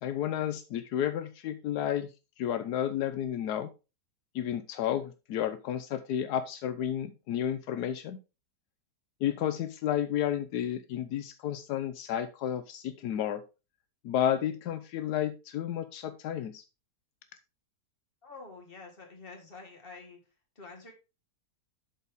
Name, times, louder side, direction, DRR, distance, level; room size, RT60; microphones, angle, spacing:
voice 1, 0.0-2.1 2.4-3.7 4.3-8.2 9.2-13.4 14.0-16.6, left 10 dB, 85° left, 11 dB, 1.2 m, -31 dB
voice 2, 18.2-20.2 20.6-20.9, left 3 dB, 35° left, 1 dB, 2.1 m, -48 dB
12.0 x 4.1 x 3.5 m, 0.29 s
omnidirectional pair, 1.6 m